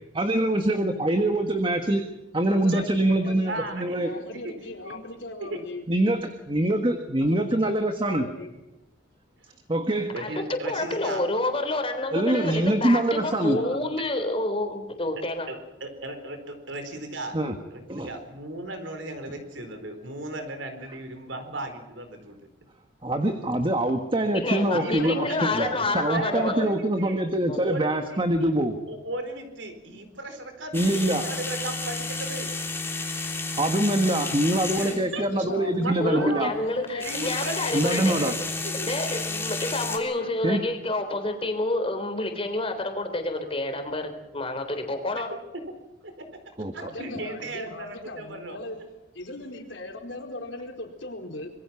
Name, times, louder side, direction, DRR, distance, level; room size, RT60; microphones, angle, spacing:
voice 1, 0.1-2.0 2.3-4.1 5.9-8.3 9.7-10.1 12.1-13.6 17.3-17.6 17.9-18.1 23.0-28.8 30.7-31.3 33.6-36.5 37.7-38.3 40.4-40.6 46.6-46.9, right 1 dB, 25° right, 6 dB, 1.5 m, -24 dB
voice 2, 2.5-3.5 4.0-5.8 7.2-8.5 13.1-13.8 24.6-26.4 35.1-37.2 46.8-48.8 49.1-51.5, left 2 dB, 70° left, 3 dB, 4.4 m, -39 dB
voice 3, 3.2-5.0 5.5-5.6 10.1-11.2 15.5-17.4 17.7-22.5 24.7-25.9 26.1-27.2 27.6-28.2 28.9-32.7 34.8-35.2 35.6-36.6 37.0-38.4 38.6-38.9 46.0-46.1 46.7-48.6, right 2 dB, 70° right, 7 dB, 4.4 m, -36 dB
voice 4, 10.2-15.5 24.3-26.7 27.4-27.7 36.0-38.2 38.7-45.3, left 2 dB, 30° left, 6 dB, 3.7 m, -29 dB
sound 1, 30.7-35.1 36.9-40.0, left 3 dB, 10° left, 3.2 m, -31 dB
26.0 x 22.0 x 5.9 m, 0.99 s
head